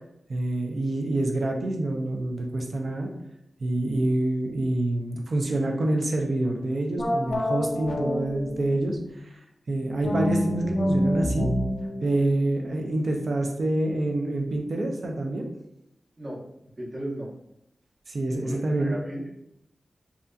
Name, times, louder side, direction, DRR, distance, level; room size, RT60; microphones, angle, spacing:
voice 1, 0.3-3.1 3.6-9.0 9.7-11.5 12.0-15.5 18.1-18.9, right 2 dB, 60° right, 2 dB, 0.4 m, -26 dB
sound 1, 7.0-9.2 10.0-13.3, left 1 dB, 60° left, 0.3 m, -28 dB
voice 2, 16.8-17.3 18.4-19.3, right 1 dB, 40° right, -5 dB, 0.8 m, -35 dB
2.6 x 2.4 x 2.2 m, 0.78 s
wide cardioid pair, 120°, 0 cm